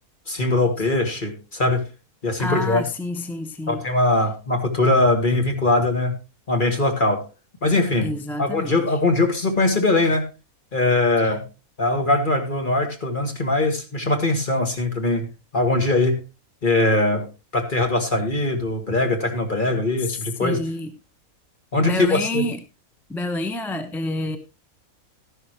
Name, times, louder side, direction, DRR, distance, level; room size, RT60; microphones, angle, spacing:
voice 1, 0.3-1.8 2.2-2.8 3.7-6.1 6.5-7.2 7.6-8.1 8.4-10.3 10.7-11.4 11.8-15.3 15.5-16.2 16.6-17.3 17.5-20.6 21.7-22.4, left 2 dB, 35° left, 2.0 m, -21 dB
voice 2, 2.4-3.8 8.0-9.0 11.2-11.4 20.0-20.9 21.8-22.6 23.1-24.4, left 2 dB, ahead, 0.6 m, -28 dB
12.5 x 11.0 x 3.1 m
omnidirectional pair, 1.5 m